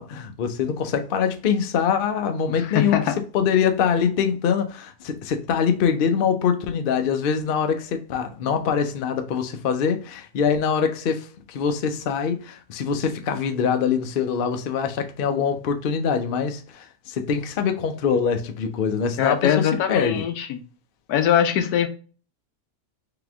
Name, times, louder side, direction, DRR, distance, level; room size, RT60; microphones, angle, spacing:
voice 1, 0.0-3.0 3.3-20.2, left 7 dB, 65° left, 0.5 m, -24 dB
voice 2, 2.6-3.1 19.2-20.6 21.1-21.9, left 9 dB, 90° left, 1.2 m, -22 dB
3.6 x 2.9 x 3.5 m
omnidirectional pair, 1.6 m